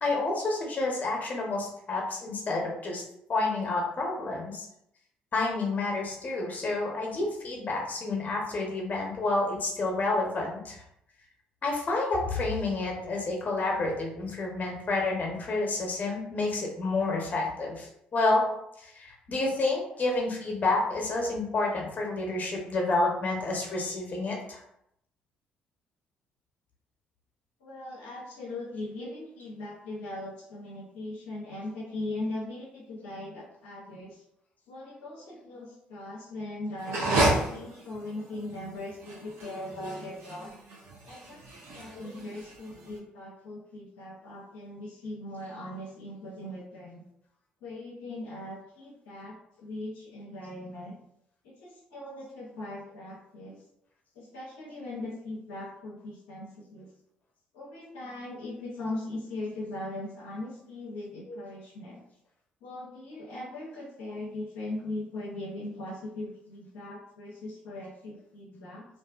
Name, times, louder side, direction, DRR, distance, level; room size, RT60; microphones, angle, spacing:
voice 1, 0.0-3.0 3.3-4.7 5.3-10.8 11.6-18.4 18.8-24.6 41.9-42.1 61.3-61.4, left 2 dB, 40° left, 0 dB, 0.8 m, -29 dB
voice 2, 27.6-34.2 34.7-40.5 41.1-47.0 47.6-50.9 51.4-53.6 54.1-56.9 57.5-62.0 62.6-68.9, left 2 dB, 80° left, -5 dB, 0.6 m, -39 dB
sound 1, 36.8-42.9, right 2 dB, 70° right, 0.6 m, -31 dB
2.5 x 2.4 x 2.3 m, 0.77 s
hypercardioid pair, 50°, 4 cm